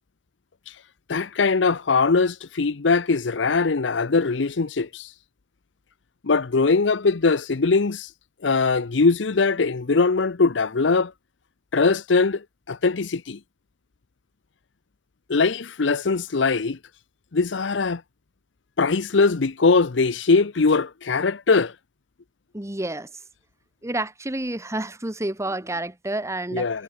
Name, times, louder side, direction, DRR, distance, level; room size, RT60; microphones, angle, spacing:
voice 1, 1.1-5.1 6.2-8.1 8.4-11.1 11.7-13.4 15.3-16.8 17.3-18.0 18.8-21.7 26.5-26.8, left 4 dB, 85° left, 0.7 m, -21 dB
voice 2, 22.5-23.1 23.8-26.7, right 1 dB, 15° right, 1.5 m, -29 dB
head